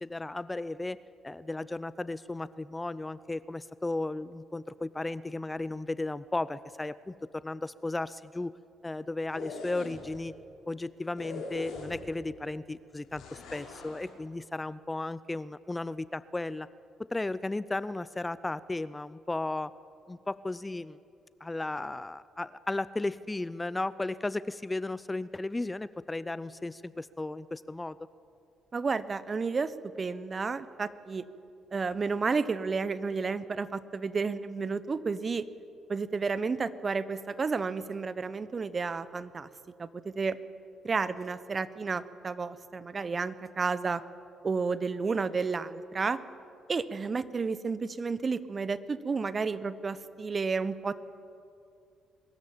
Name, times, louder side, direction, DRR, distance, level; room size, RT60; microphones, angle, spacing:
voice 1, 0.0-1.0 1.2-8.5 8.8-10.3 10.7-16.7 17.0-19.7 20.1-21.0 21.4-28.0, left 2 dB, 20° left, 18 dB, 0.5 m, -35 dB
sound 1, 9.2-10.2 11.2-12.2 13.1-14.1, left 3 dB, 65° left, 3.8 m, -42 dB
voice 2, 28.7-29.7 30.0-31.2 31.7-35.5 35.9-39.5 39.8-40.4 40.8-44.0 44.4-46.2 46.7-50.9, right 4 dB, 35° right, 15 dB, 1.0 m, -31 dB
22.5 x 13.5 x 8.9 m, 2.6 s
hypercardioid pair, 45°, 0 cm